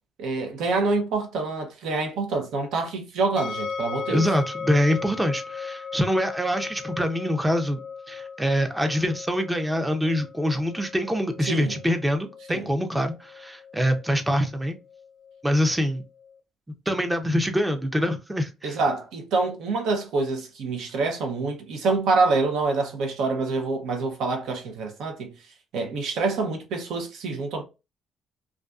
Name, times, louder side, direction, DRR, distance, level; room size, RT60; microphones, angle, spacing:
voice 1, 0.2-4.3 11.5-11.8 12.5-12.7 18.6-25.3 25.7-27.6, right 3 dB, 75° right, 0.6 m, -26 dB
sound 1, 3.4-16.3, left 5 dB, 60° left, 0.5 m, -38 dB
voice 2, 4.1-7.8 8.1-14.8 15.4-16.0 16.9-18.8, equal, 10° right, 0.5 m, -25 dB
2.4 x 2.3 x 2.3 m
cardioid pair, 85°, 0 cm